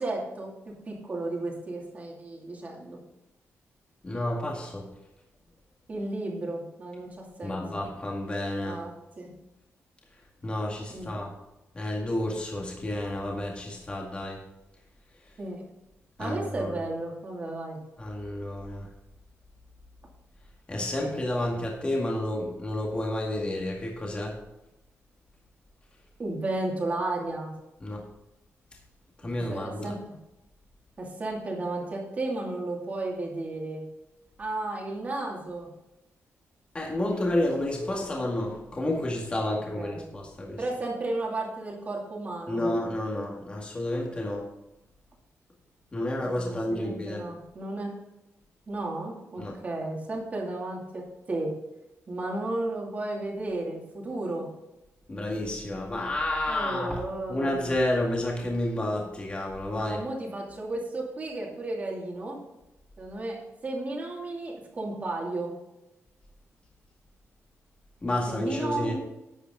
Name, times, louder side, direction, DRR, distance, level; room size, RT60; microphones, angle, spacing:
voice 1, 0.0-3.0 5.9-7.9 8.6-9.3 10.9-11.2 15.4-15.6 16.2-17.8 26.2-27.5 29.5-30.0 31.0-33.8 34.4-35.7 39.5-40.1 40.6-42.6 46.2-46.4 46.7-48.0 48.7-51.5 52.1-54.5 56.5-57.6 59.7-62.4 63.0-65.5 68.3-69.0, right 2 dB, 30° right, -2 dB, 2.6 m, -33 dB
voice 2, 4.0-4.9 7.4-8.8 10.4-11.3 11.7-14.4 16.2-16.7 18.0-18.9 20.7-24.4 27.8-28.0 29.2-29.9 36.7-40.6 42.5-44.5 45.9-47.3 49.4-49.6 55.1-57.0 57.3-60.0 68.0-69.0, left 1 dB, 20° left, -1 dB, 2.0 m, -30 dB
11.5 x 8.3 x 3.8 m, 0.93 s
wide cardioid pair, 165°, 5 cm